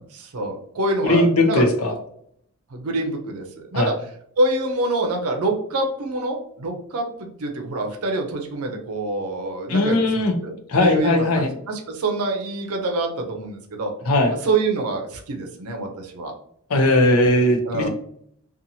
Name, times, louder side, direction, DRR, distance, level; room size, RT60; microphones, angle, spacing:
voice 1, 0.0-1.7 2.7-3.9 4.4-10.0 10.4-10.5 10.8-13.9 14.3-16.3 17.6-17.9, right 2 dB, 85° right, 2 dB, 0.6 m, -26 dB
voice 2, 1.0-1.9 3.7-3.9 9.7-10.3 10.7-11.5 14.1-14.3 16.7-17.9, left 1 dB, 80° left, 4 dB, 0.6 m, -18 dB
2.7 x 2.4 x 2.7 m, 0.66 s
head